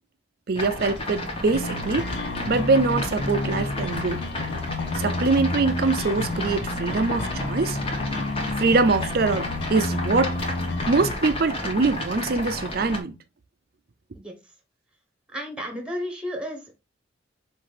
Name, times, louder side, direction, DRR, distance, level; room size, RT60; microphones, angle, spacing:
voice 1, 0.5-2.1 2.5-4.2 4.9-7.8 8.6-10.4 10.9-13.2, right 3 dB, 50° right, 0.5 m, -23 dB
sound 1, 0.6-13.0, left 1 dB, 30° left, 1.2 m, -32 dB
sound 2, 1.5-11.1, left 2 dB, 65° left, 0.6 m, -30 dB
voice 2, 14.1-14.5 15.3-16.8, equal, 5° right, 1.0 m, -33 dB
5.6 x 2.6 x 3.2 m
head